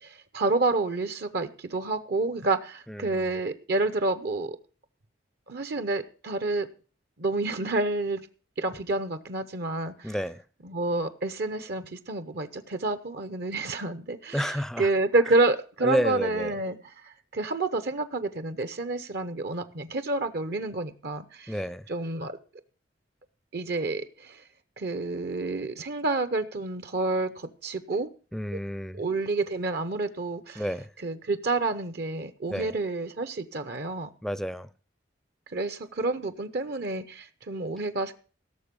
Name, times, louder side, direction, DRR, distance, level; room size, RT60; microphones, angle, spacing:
voice 1, 0.0-4.6 5.5-6.7 7.2-8.2 8.6-10.1 10.6-21.5 21.9-22.4 23.5-24.4 24.8-28.1 28.9-30.6 31.0-34.1 35.5-38.1, right 2 dB, 60° right, 0.8 m, -29 dB
voice 2, 2.9-3.4 10.0-10.4 14.3-14.9 15.8-16.6 21.5-21.9 28.3-29.0 30.6-30.9 32.5-32.7 34.2-34.7, equal, ahead, 0.5 m, -30 dB
17.0 x 6.8 x 5.2 m
head